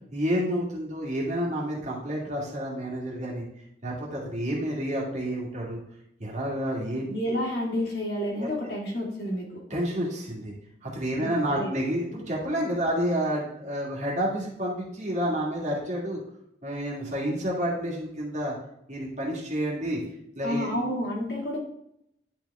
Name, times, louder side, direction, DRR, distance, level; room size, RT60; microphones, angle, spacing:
voice 1, 0.1-3.4 3.8-5.8 6.2-7.4 8.4-8.5 9.7-10.5 10.8-16.2 16.6-18.5 18.9-20.0 20.4-20.8, equal, 40° right, -3 dB, 1.9 m, -29 dB
voice 2, 7.1-9.6 11.2-11.7 20.4-21.6, equal, 60° left, -2 dB, 2.1 m, -30 dB
10.0 x 4.4 x 3.5 m, 0.77 s
head